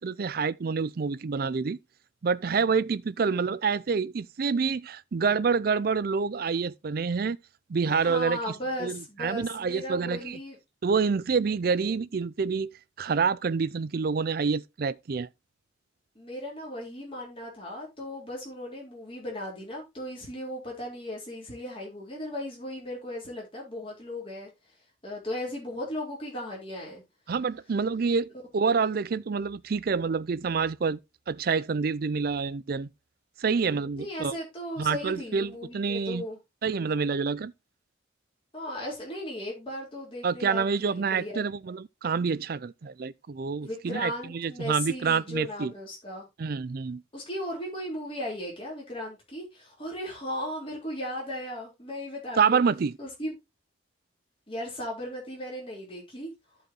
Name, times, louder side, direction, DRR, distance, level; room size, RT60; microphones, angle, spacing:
voice 1, 0.0-1.8 2.2-7.4 7.7-8.4 8.8-10.4 10.8-12.7 13.0-15.3 27.3-31.0 31.3-32.9 33.4-34.3 34.8-36.2 36.6-37.5 40.2-45.7 46.4-47.0 52.4-53.0, right 5 dB, 50° right, 0.4 m, -27 dB
voice 2, 7.8-10.6 16.2-24.5 25.0-27.0 34.0-36.4 38.5-41.4 43.6-46.3 47.1-52.6 53.0-53.4 54.5-56.3, left 1 dB, 30° left, 3.9 m, -36 dB
14.0 x 4.9 x 3.0 m
head